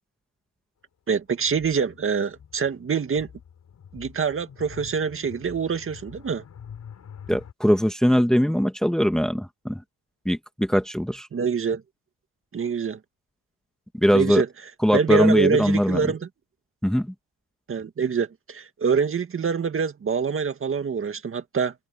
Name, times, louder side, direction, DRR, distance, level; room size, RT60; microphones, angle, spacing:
voice 1, 1.1-3.3 3.9-6.4 11.3-11.8 12.5-13.0 14.1-14.5 14.9-16.2 17.7-21.7, right 6 dB, 35° right, 2.0 m, -25 dB
sound 1, 1.4-7.5, left 8 dB, 45° left, 7.2 m, -45 dB
voice 2, 7.3-9.8 10.2-11.3 14.0-14.4 14.8-16.0 16.8-17.1, equal, ahead, 1.5 m, -21 dB
cardioid pair, 120°, 37 cm